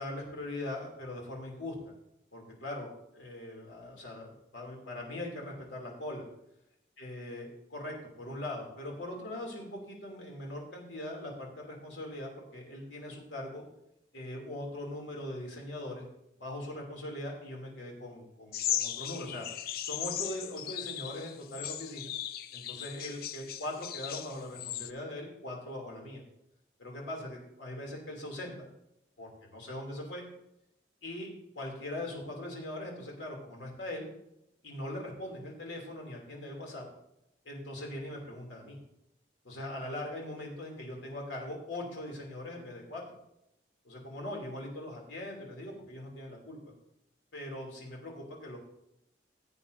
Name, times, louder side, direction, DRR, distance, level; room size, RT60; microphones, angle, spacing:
voice 1, 0.0-1.9 2.3-2.9 3.1-6.3 7.0-13.6 14.1-16.1 16.4-19.5 19.8-22.1 22.5-26.2 26.8-28.7 29.2-30.2 31.0-31.3 31.5-34.1 34.6-36.8 37.4-38.8 39.4-43.0 43.8-46.7 47.3-48.6, left 1 dB, 85° left, -1 dB, 2.8 m, -41 dB
sound 1, 18.5-24.9, left 11 dB, 50° left, 0.4 m, -37 dB
16.5 x 8.7 x 2.7 m, 0.81 s
head